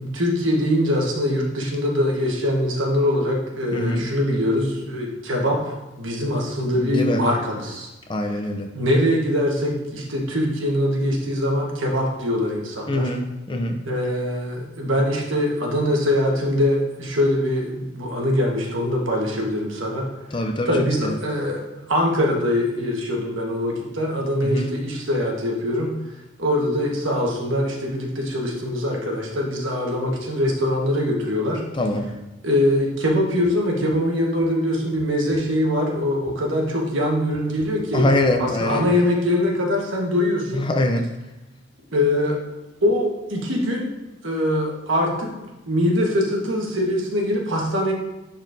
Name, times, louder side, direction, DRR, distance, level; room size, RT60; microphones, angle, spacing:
voice 1, 0.0-7.9 8.7-13.1 13.9-20.1 20.7-26.0 26.4-31.6 32.4-38.0 38.4-40.6 41.9-42.4 42.8-43.9 44.2-45.3 45.7-47.9, left 1 dB, 70° right, -1 dB, 1.3 m, -23 dB
voice 2, 3.7-4.1 6.8-7.2 8.1-8.7 12.9-13.8 20.3-20.7 21.0-21.1 24.4-24.7 31.7-32.1 37.9-38.9 40.5-41.1, left 1 dB, 25° left, 4 dB, 0.5 m, -23 dB
10.0 x 4.2 x 2.6 m, 1.0 s
head